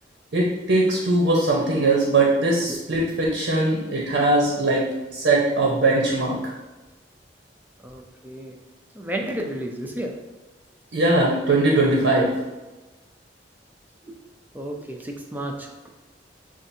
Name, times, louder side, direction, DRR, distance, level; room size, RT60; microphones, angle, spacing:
voice 1, 0.3-4.9 5.1-6.5 10.9-12.3, right 2 dB, 90° right, -2 dB, 0.8 m, -20 dB
voice 2, 7.8-8.5 9.0-10.1 14.5-15.9, right 1 dB, 10° right, 1 dB, 0.5 m, -32 dB
7.3 x 2.5 x 2.7 m, 1.1 s
head